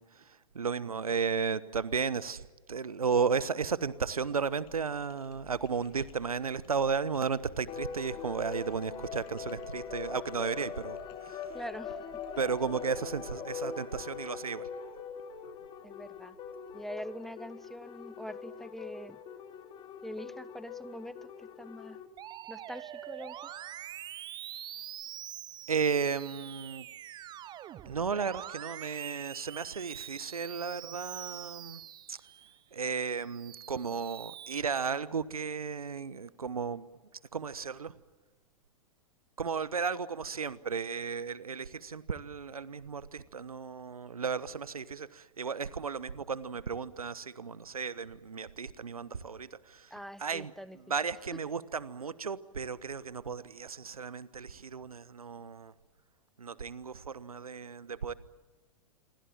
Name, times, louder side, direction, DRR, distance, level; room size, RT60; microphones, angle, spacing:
voice 1, 0.0-11.6 12.4-14.7 25.7-26.9 27.8-31.8 32.1-32.2 32.7-36.9 37.3-37.9 39.4-49.9 50.2-50.5 50.9-55.7 56.4-58.1, right 5 dB, 75° right, 18 dB, 1.2 m, -34 dB
sound 1, 4.0-13.3, left 9 dB, 40° left, 6.6 m, -58 dB
sound 2, 7.7-22.1, left 6 dB, 25° left, 2.8 m, -42 dB
voice 2, 11.5-12.2 15.8-16.4 16.7-19.2 20.0-22.0 22.5-23.4 49.9-50.8, equal, ahead, 17 dB, 0.7 m, -44 dB
Musical instrument, 22.2-32.6 33.0-34.6, right 12 dB, 25° right, 1.1 m, -45 dB
27.5 x 24.5 x 7.5 m, 1.3 s
figure-of-eight pair, 100°, 19 cm